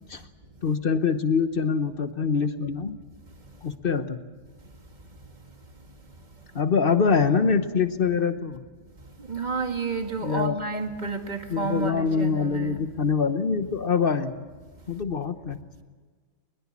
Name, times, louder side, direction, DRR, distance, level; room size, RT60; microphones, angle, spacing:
voice 1, 0.6-3.0 3.6-4.2 6.5-8.7 10.2-10.6 11.5-14.5 14.9-15.6, left 5 dB, 45° left, 0.7 m, -24 dB
voice 2, 9.2-12.8, right 4 dB, 20° right, 1.9 m, -30 dB
22.0 x 21.5 x 7.3 m
omnidirectional pair, 2.2 m